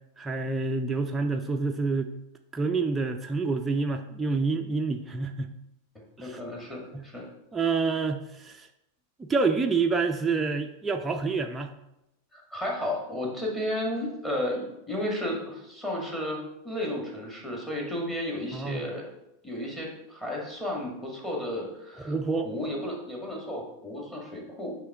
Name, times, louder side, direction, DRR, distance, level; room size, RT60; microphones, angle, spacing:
voice 1, 0.2-2.1 2.5-5.5 6.2-6.4 6.9-7.0 7.5-8.7 9.2-11.7 18.5-18.9 22.0-22.5, right 4 dB, 10° right, 4 dB, 0.4 m, -28 dB
voice 2, 6.2-7.3 12.3-19.0 19.4-22.1 22.4-24.8, left 1 dB, 10° left, -2 dB, 1.7 m, -33 dB
8.9 x 3.1 x 3.5 m, 0.88 s
figure-of-eight pair, 90°, 0 cm